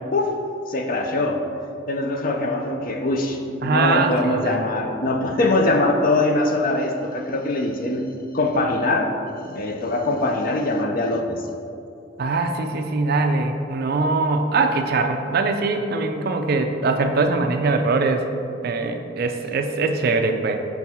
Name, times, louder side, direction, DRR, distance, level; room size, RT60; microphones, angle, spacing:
voice 1, 0.7-1.4 1.9-8.0 8.3-9.1 9.4-11.4, left 2 dB, 50° left, 4 dB, 0.6 m, -22 dB
voice 2, 3.6-4.7 12.2-18.3 18.6-20.6, right 3 dB, 55° right, 6 dB, 0.4 m, -22 dB
6.2 x 3.5 x 5.7 m, 2.6 s
head